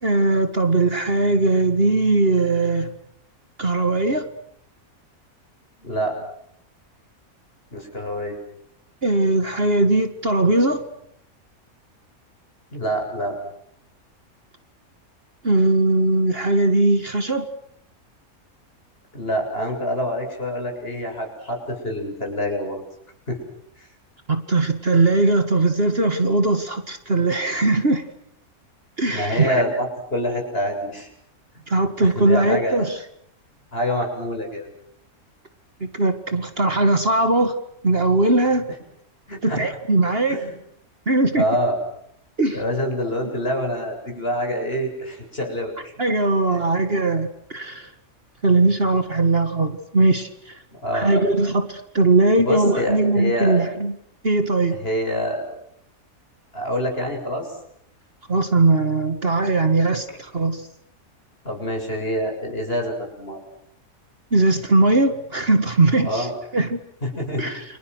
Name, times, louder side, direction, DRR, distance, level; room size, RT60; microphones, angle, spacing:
voice 1, 0.0-2.9 3.6-4.3 9.0-10.8 15.4-17.5 24.3-28.0 29.0-29.6 31.7-33.0 35.8-37.5 37.8-38.7 39.4-40.4 41.1-41.4 42.4-42.6 46.0-47.9 48.4-50.6 50.9-53.9 54.2-54.8 58.3-60.7 64.3-66.8 67.4-67.6, right 2 dB, 40° right, 7 dB, 2.2 m, -20 dB
voice 2, 5.8-6.2 7.7-8.4 12.7-13.4 19.1-22.8 23.3-23.4 23.8-23.9 29.1-31.1 31.5-31.6 32.0-32.8 33.7-34.7 39.3-39.6 40.3-40.5 41.3-41.8 42.5-45.9 46.5-46.7 50.7-51.1 52.4-53.6 54.7-55.5 56.5-57.5 61.4-63.4 66.0-66.3 67.0-67.5, equal, 40° left, 3 dB, 7.9 m, -26 dB
30.0 x 27.5 x 6.4 m, 0.72 s
omnidirectional pair, 1.5 m